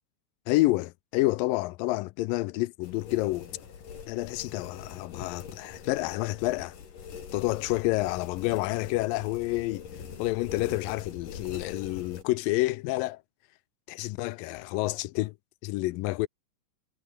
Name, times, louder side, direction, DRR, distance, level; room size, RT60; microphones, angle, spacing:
voice 1, 0.5-3.5 4.1-6.7 7.3-9.9 10.2-13.2 13.9-15.3 15.6-16.3, left 19 dB, 80° left, 2.2 m, -29 dB
sound 1, 2.8-12.2, left 7 dB, 65° left, 4.8 m, -43 dB
omnidirectional pair, 4.2 m